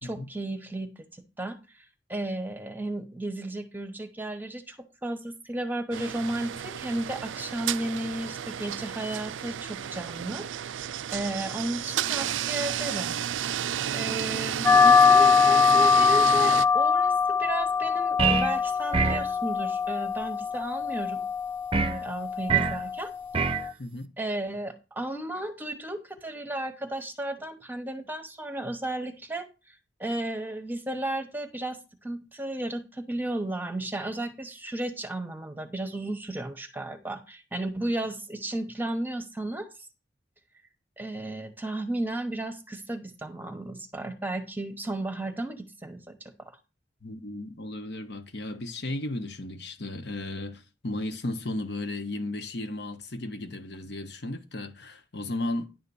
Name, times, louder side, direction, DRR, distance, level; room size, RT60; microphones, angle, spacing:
voice 1, 0.0-1.8 2.1-4.8 5.0-10.5 11.1-13.2 13.9-17.1 17.4-21.2 21.8-23.1 24.2-39.7 41.0-46.5, right 1 dB, 10° right, 1.0 m, -34 dB
sound 1, 5.9-16.6, right 9 dB, 90° right, 0.4 m, -32 dB
sound 2, 14.6-23.7, left 5 dB, 10° left, 0.4 m, -23 dB
sound 3, 18.2-18.6 18.9-19.3 21.7-22.0 22.5-22.8 23.3-23.7, right 5 dB, 30° right, 0.6 m, -24 dB
voice 2, 23.8-24.1 47.0-55.7, left 2 dB, 65° left, 1.3 m, -35 dB
10.5 x 3.7 x 7.0 m
head